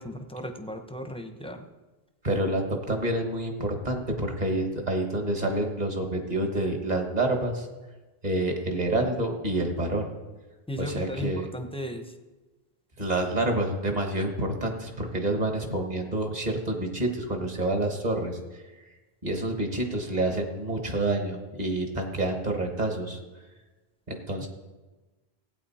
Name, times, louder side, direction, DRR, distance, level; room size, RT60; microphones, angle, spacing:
voice 1, 0.0-1.7 10.7-12.0, equal, 5° left, 5 dB, 0.8 m, -36 dB
voice 2, 2.2-7.7 8.2-10.1 10.8-11.5 13.0-18.4 19.2-23.2 24.1-24.5, right 1 dB, 40° right, 3 dB, 1.6 m, -28 dB
16.0 x 8.9 x 4.3 m, 1.2 s
omnidirectional pair, 1.0 m